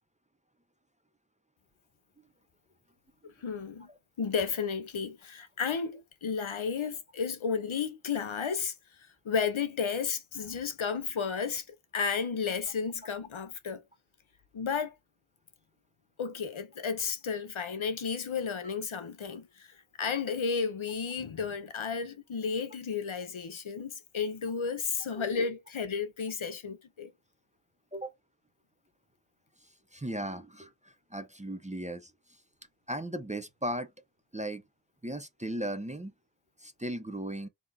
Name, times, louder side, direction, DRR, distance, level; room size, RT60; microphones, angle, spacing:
voice 1, 3.2-3.9 4.2-8.7 9.2-11.7 11.9-13.8 14.5-14.9 16.2-27.1, left 6 dB, 70° left, 0.8 m, -33 dB
voice 2, 25.1-25.5 27.9-28.1 29.6-32.4 32.9-33.9 34.3-34.6 35.0-36.1 36.6-37.5, right 1 dB, 15° right, 0.6 m, -37 dB
3.7 x 2.9 x 4.0 m
wide cardioid pair, 70°, 49 cm